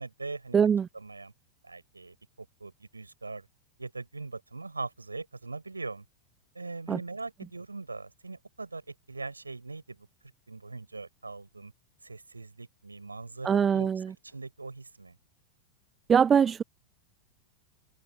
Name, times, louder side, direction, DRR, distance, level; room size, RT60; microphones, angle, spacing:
voice 1, 0.0-0.6 0.9-1.3 1.6-3.5 3.8-6.1 6.5-10.1 10.5-11.7 12.0-13.9 14.2-15.2, right 3 dB, 80° right, 6.0 m, -41 dB
voice 2, 0.5-0.9 6.9-7.0 13.4-14.1 16.1-16.6, right 7 dB, 20° right, 0.7 m, -22 dB
figure-of-eight pair, 90°, 0 cm